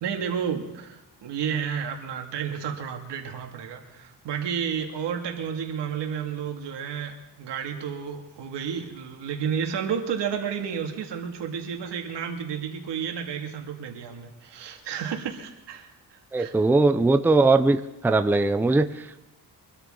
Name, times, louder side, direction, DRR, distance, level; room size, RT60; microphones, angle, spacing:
voice 1, 0.0-16.5, right 7 dB, 85° right, 3 dB, 2.3 m, -31 dB
voice 2, 16.3-17.8 18.0-19.2, right 3 dB, 5° right, 9 dB, 0.5 m, -20 dB
24.0 x 13.0 x 3.8 m, 0.98 s
cardioid pair, 140°, 41 cm